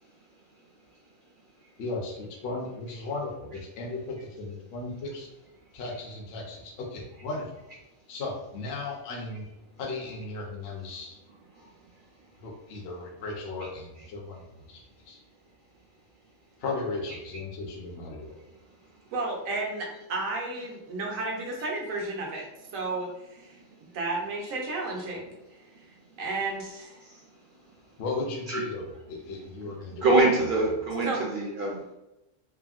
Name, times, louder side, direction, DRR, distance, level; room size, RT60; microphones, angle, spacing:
voice 1, 1.8-5.3 5.7-7.5 8.1-9.4 9.8-11.2 12.4-14.4 14.7-14.8 15.1-15.2 16.6-18.4 28.0-30.1 30.6-30.7, left 3 dB, 60° left, -1 dB, 0.8 m, -36 dB
voice 2, 19.1-22.4 22.7-23.6 23.9-25.3 26.2-27.0 31.0-31.2, right 2 dB, 90° right, -1 dB, 1.2 m, -32 dB
voice 3, 30.0-31.8, right 2 dB, 65° right, -3 dB, 0.5 m, -25 dB
3.4 x 2.1 x 2.4 m, 0.94 s
omnidirectional pair, 1.3 m